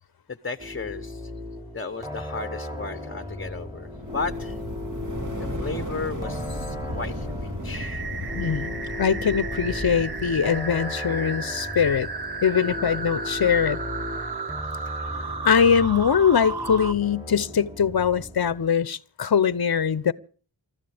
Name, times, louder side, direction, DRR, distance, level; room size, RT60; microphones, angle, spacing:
voice 1, 0.3-1.3 1.7-4.6 5.4-8.1, left 4 dB, 30° left, 0.9 m, -35 dB
sound 1, 0.6-18.7, left 1 dB, 10° right, 2.9 m, -36 dB
sound 2, 3.9-10.9, equal, 45° right, 2.9 m, -35 dB
Descending Screech, 7.7-16.9, right 4 dB, 60° right, 1.4 m, -34 dB
voice 2, 8.3-12.1 12.4-13.8 15.4-20.1, left 7 dB, 55° left, 0.8 m, -22 dB
28.5 x 13.5 x 3.4 m
wide cardioid pair, 65°, 43 cm